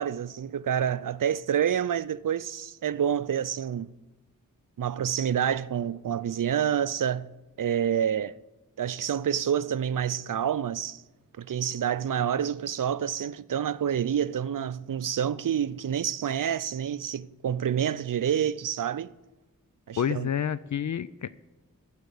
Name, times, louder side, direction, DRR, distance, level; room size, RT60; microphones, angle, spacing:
voice 1, 0.0-3.9 4.8-7.3 7.6-8.3 8.8-11.0 11.4-19.1 19.9-20.3, right 9 dB, 65° right, 0.5 m, -28 dB
voice 2, 20.0-21.3, left 8 dB, 60° left, 0.4 m, -29 dB
15.0 x 5.0 x 9.5 m
wide cardioid pair, 70°, 34 cm